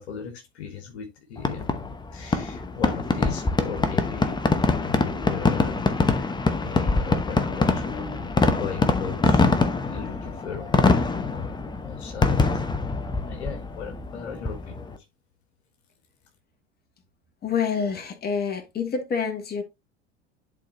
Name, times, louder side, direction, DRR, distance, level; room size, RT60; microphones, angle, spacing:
voice 1, 0.0-6.3 6.6-9.5 9.8-11.5 11.8-12.5 13.2-14.9, left 7 dB, 70° left, 1.7 m, -37 dB
Fireworks, 1.4-15.0, left 3 dB, 15° left, 0.9 m, -24 dB
voice 2, 17.4-19.6, left 6 dB, 30° left, 2.2 m, -27 dB
11.0 x 4.2 x 2.9 m
figure-of-eight pair, 75°, 34 cm